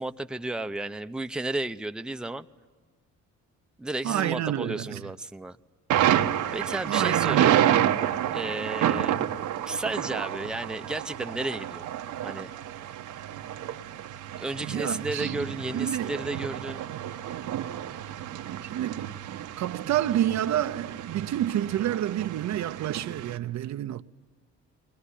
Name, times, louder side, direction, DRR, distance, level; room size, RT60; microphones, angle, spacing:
voice 1, 0.0-2.5 3.8-5.6 6.5-7.6 8.3-9.2 9.7-11.9 12.2-12.5 14.3-16.8, right 2 dB, 5° right, 0.6 m, -33 dB
voice 2, 4.0-5.0 6.9-7.9 14.6-15.3 15.7-16.1 18.6-19.0 19.6-24.0, right 12 dB, 65° right, 0.7 m, -29 dB
Thunder, 5.9-23.4, right 11 dB, 85° right, 1.1 m, -29 dB
21.5 x 20.5 x 10.0 m
cardioid pair, 90°, 30 cm